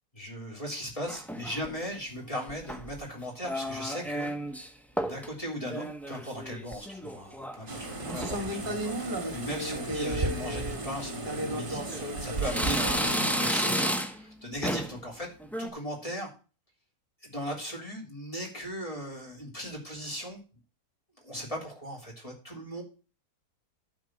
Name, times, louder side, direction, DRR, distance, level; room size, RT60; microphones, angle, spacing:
voice 1, 0.1-4.6 5.0-15.3 15.6-16.3 17.2-20.4 21.2-22.8, equal, 20° left, -2 dB, 3.6 m, -38 dB
sound 1, 1.1-1.8 2.5-3.0 3.4-4.7 5.0-5.3 5.6-7.6 7.9-8.4 8.9-9.3 9.6-9.7 10.6-10.8 11.4-12.1 12.4-14.3 14.6-15.0 15.4-15.7, equal, ahead, 0.5 m, -32 dB
sound 2, 7.7-13.5, right 1 dB, 35° right, 1.6 m, -33 dB
12.0 x 4.4 x 6.3 m, 0.34 s
omnidirectional pair, 1.6 m